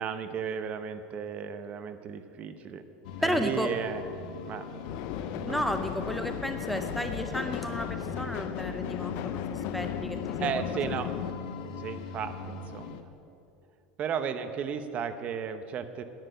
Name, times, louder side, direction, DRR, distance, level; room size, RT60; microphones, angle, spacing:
voice 1, 0.0-2.8 3.2-4.0 4.4-4.7 5.3-5.6 10.4-11.1 11.8-13.1 14.0-16.0, right 7 dB, 35° right, 10 dB, 0.8 m, -34 dB
sound 1, 3.0-13.0, left 4 dB, 85° left, 1.1 m, -40 dB
voice 2, 3.2-3.7 5.5-10.6, equal, ahead, 6 dB, 0.5 m, -33 dB
sound 2, 4.8-11.3, left 10 dB, 60° left, 0.7 m, -36 dB
10.5 x 9.0 x 9.2 m, 2.7 s
supercardioid pair, 145°, 4 cm